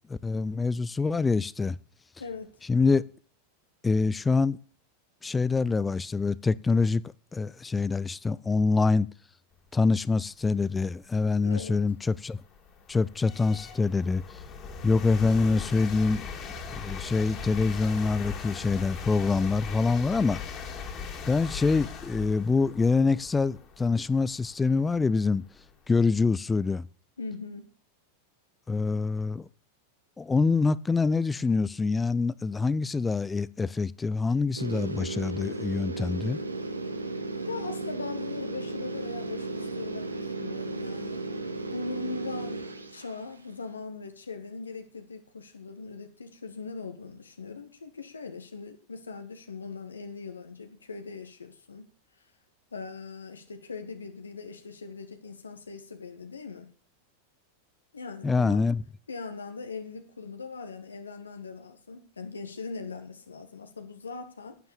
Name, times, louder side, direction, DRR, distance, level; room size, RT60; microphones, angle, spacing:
voice 1, 0.1-1.8 2.7-3.0 3.8-4.6 5.2-7.0 7.3-9.1 9.7-12.4 12.9-14.2 14.8-16.2 16.7-20.4 21.3-25.4 25.9-26.9 28.7-29.5 30.2-36.4 58.2-58.8, left 4 dB, 15° left, 0.6 m, -25 dB
sound 1, 10.8-10.9 11.5-26.3, left 5 dB, 30° left, 2.7 m, -40 dB
voice 2, 11.4-11.8 27.2-27.6 37.0-37.2 37.4-41.2 41.7-42.6 42.9-51.9 52.7-56.7 57.9-58.6 59.1-64.6, left 4 dB, 75° left, 1.6 m, -40 dB
sound 2, 34.6-43.3, right 3 dB, 80° right, 1.4 m, -35 dB
11.0 x 9.5 x 7.1 m
figure-of-eight pair, 90°, 0 cm